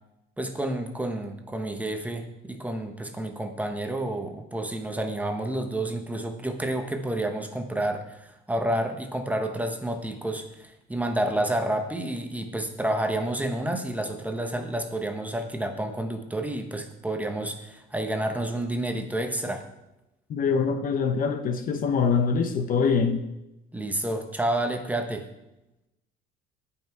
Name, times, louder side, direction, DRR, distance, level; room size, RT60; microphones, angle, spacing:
voice 1, 0.4-19.6 23.7-25.2, right 1 dB, 5° right, 1.1 m, -29 dB
voice 2, 20.3-23.3, left 5 dB, 40° left, 0.9 m, -24 dB
17.5 x 5.8 x 4.7 m
cardioid pair, 145°, 21 cm